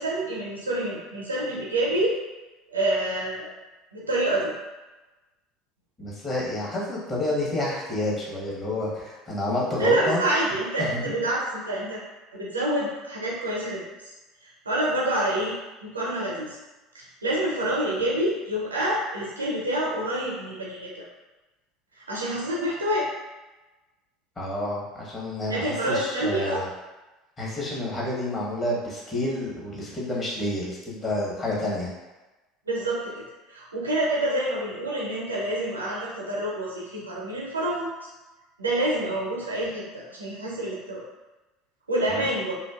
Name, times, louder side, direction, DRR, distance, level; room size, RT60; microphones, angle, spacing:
voice 1, 0.0-2.1 2.7-3.5 3.9-4.5 9.8-12.0 12.3-13.8 14.4-15.5 15.8-16.6 16.9-21.0 22.1-23.1 25.5-26.6 32.7-38.1 38.6-41.0 41.9-42.5, right 1 dB, 90° right, -5 dB, 0.5 m, -27 dB
voice 2, 6.0-10.2 10.8-11.1 24.4-26.7 27.4-31.9 42.1-42.3, left 1 dB, 30° left, -5 dB, 0.9 m, -29 dB
2.5 x 2.2 x 2.3 m, 1.1 s
hypercardioid pair, 70°, 0 cm